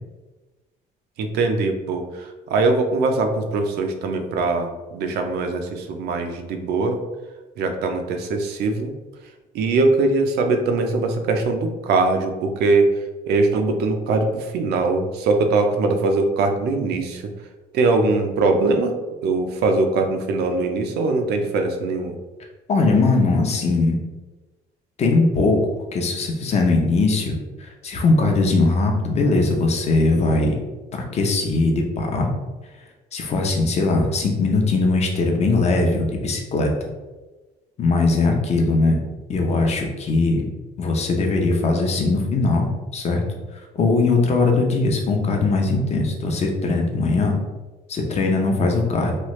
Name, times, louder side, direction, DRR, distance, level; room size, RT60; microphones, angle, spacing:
voice 1, 1.2-7.0 7.6-8.9 9.5-12.9 13.3-17.2 17.7-18.9 19.2-22.2, right 3 dB, 75° right, 5 dB, 0.5 m, -21 dB
voice 2, 22.7-24.0 25.0-25.6 25.9-30.6 30.9-32.3 33.1-36.7 37.8-39.0 39.3-40.4 40.8-42.7 42.9-43.2 43.5-47.3 47.9-49.1, left 3 dB, 40° left, 2 dB, 0.6 m, -20 dB
3.1 x 2.3 x 3.0 m, 1.2 s
cardioid pair, 110°, 17 cm